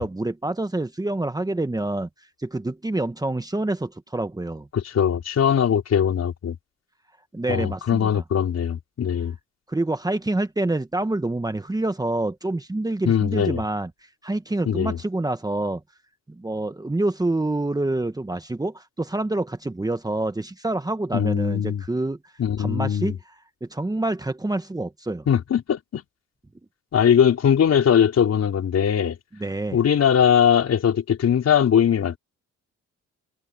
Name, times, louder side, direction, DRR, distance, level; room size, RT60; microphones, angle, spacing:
voice 1, 0.0-2.1 2.4-4.7 7.3-8.2 9.7-13.9 14.2-15.8 16.4-22.2 22.6-23.1 23.6-25.3 29.4-29.8, right 2 dB, 10° right, 1.4 m, -27 dB
voice 2, 4.7-6.6 7.5-9.4 13.0-13.6 14.6-15.0 21.1-21.8 22.4-23.2 25.3-26.0 26.9-29.2 29.7-32.2, left 8 dB, 55° left, 4.7 m, -20 dB
cardioid pair, 90°, 30 cm